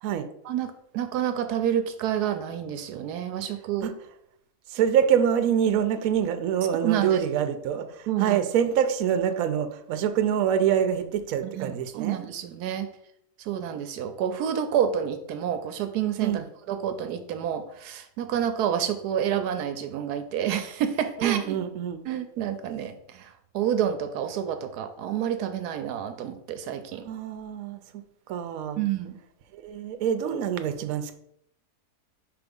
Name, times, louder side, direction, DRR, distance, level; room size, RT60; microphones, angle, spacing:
voice 1, 0.4-3.9 6.8-7.2 8.1-8.4 11.4-12.9 13.4-16.3 16.7-21.6 22.1-27.0 28.8-29.2, right 9 dB, 85° right, 9 dB, 1.2 m, -29 dB
voice 2, 4.7-12.2 16.2-16.4 21.2-22.0 27.0-27.8 28.3-28.8 29.5-31.2, right 8 dB, 70° right, 9 dB, 1.0 m, -25 dB
5.3 x 3.5 x 5.2 m, 0.73 s
omnidirectional pair, 1.7 m